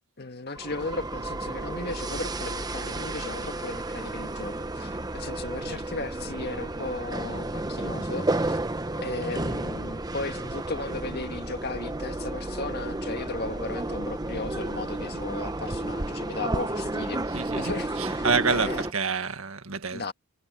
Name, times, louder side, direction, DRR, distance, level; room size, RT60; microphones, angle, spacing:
voice 1, 0.2-8.6 9.0-18.8 19.9-20.1, left 3 dB, 50° left, 1.8 m, -36 dB
sound 1, 0.6-18.9, right 2 dB, 20° right, 0.9 m, -32 dB
voice 2, 17.3-17.7 18.0-20.0, right 5 dB, 75° right, 1.8 m, -28 dB
head